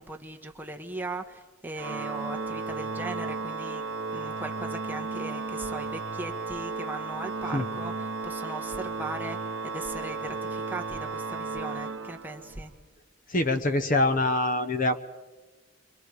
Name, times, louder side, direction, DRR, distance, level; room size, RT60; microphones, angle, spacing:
voice 1, 0.0-3.8 4.1-9.4 9.6-12.7, right 2 dB, 10° right, 3 dB, 1.4 m, -38 dB
Organ, 1.7-12.6, right 3 dB, 75° right, 0.8 m, -34 dB
voice 2, 13.3-15.0, left 2 dB, 45° left, 9 dB, 1.1 m, -24 dB
29.5 x 24.5 x 5.0 m, 1.2 s
head